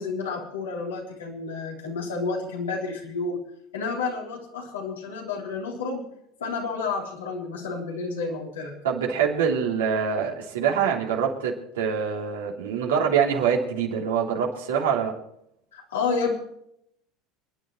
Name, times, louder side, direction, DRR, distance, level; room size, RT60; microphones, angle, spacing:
voice 1, 0.0-3.4 3.7-6.0 6.4-8.7 15.7-16.3, left 4 dB, 90° left, -2 dB, 3.7 m, -30 dB
voice 2, 8.8-15.2, right 7 dB, 85° right, -1 dB, 3.2 m, -25 dB
29.5 x 10.5 x 3.2 m, 0.76 s
hypercardioid pair, 85°, 0 cm